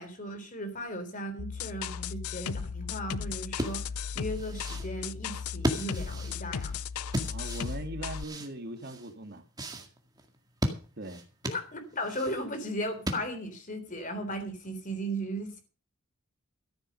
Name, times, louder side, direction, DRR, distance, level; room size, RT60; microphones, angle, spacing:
voice 1, 0.0-3.8 4.1-6.8 11.5-15.6, equal, 35° left, 3.5 m, -36 dB
sound 1, 1.4-8.2, left 6 dB, 80° left, 0.5 m, -36 dB
sound 2, 3.5-13.6, equal, 15° right, 2.0 m, -36 dB
voice 2, 7.2-9.4 11.0-11.2, right 1 dB, 45° right, 2.0 m, -40 dB
14.0 x 8.7 x 6.4 m
head